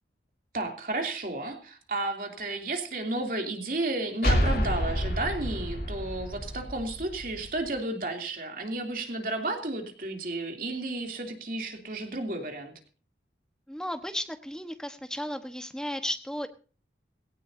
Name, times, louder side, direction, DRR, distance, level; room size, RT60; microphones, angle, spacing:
voice 1, 0.5-12.7, right 2 dB, 50° right, 3 dB, 3.0 m, -32 dB
sound 1, 4.2-7.7, equal, 55° left, 2.9 m, -29 dB
voice 2, 13.7-16.5, equal, 5° left, 7 dB, 1.2 m, -34 dB
17.5 x 17.5 x 2.7 m, 0.36 s
head